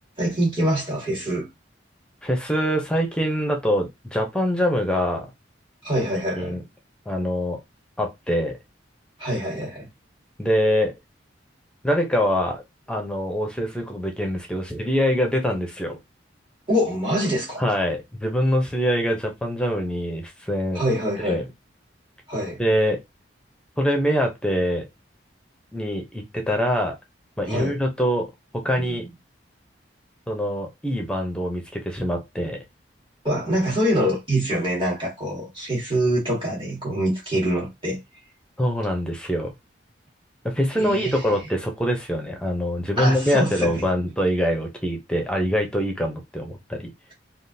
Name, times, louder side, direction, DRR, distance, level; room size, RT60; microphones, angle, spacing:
voice 1, 0.2-1.5 5.8-6.6 9.2-9.9 16.7-17.6 20.7-21.4 22.3-22.6 27.5-27.8 28.8-29.0 33.2-38.0 40.8-41.3 43.0-43.9, equal, 25° right, 1.3 m, -25 dB
voice 2, 2.2-5.3 6.4-6.6 7.1-7.6 8.0-8.6 10.4-10.9 11.8-12.6 12.9-16.0 17.6-20.8 21.2-21.4 22.6-23.0 23.8-24.9 25.7-26.9 27.4-28.3 28.6-29.0 30.3-32.6 38.6-39.5 40.4-46.9, equal, 5° left, 0.7 m, -24 dB
3.6 x 2.5 x 2.7 m
head